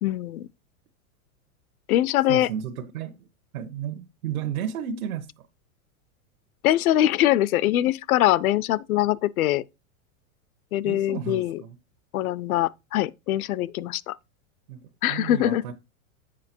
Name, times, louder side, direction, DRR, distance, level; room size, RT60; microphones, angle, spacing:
voice 1, 0.0-0.5 1.9-2.5 6.6-9.6 10.7-11.6 12.1-14.2 15.0-15.6, left 13 dB, 70° left, 0.6 m, -23 dB
voice 2, 2.3-3.3 3.5-5.5 10.8-11.8 14.7-15.7, right 8 dB, 70° right, 1.2 m, -33 dB
7.6 x 5.2 x 4.4 m
supercardioid pair, 170°, 44 cm